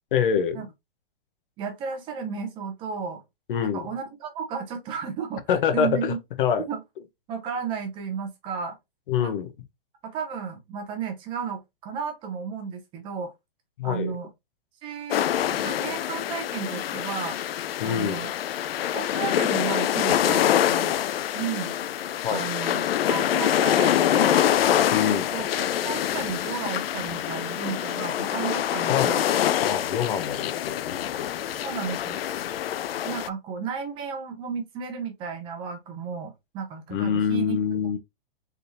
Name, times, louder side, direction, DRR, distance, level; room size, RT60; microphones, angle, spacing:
voice 1, 0.1-0.6 3.5-3.9 5.5-6.6 9.1-9.5 13.8-14.2 17.8-18.2 22.2-22.5 24.9-25.3 28.9-29.2 29.6-31.4 36.9-38.0, left 8 dB, 60° left, 1.0 m, -25 dB
voice 2, 1.6-3.2 3.7-5.4 5.7-6.2 6.6-6.8 7.3-8.8 9.2-9.3 10.0-13.3 13.8-14.3 14.8-15.3 15.6-17.4 17.8-18.3 18.9-21.0 21.3-21.7 22.3-29.3 31.6-32.2 33.0-38.0, right 6 dB, 15° right, 0.6 m, -33 dB
sound 1, 15.1-33.3, left 11 dB, 80° left, 0.5 m, -25 dB
4.2 x 3.6 x 2.7 m
hypercardioid pair, 155°, 29 cm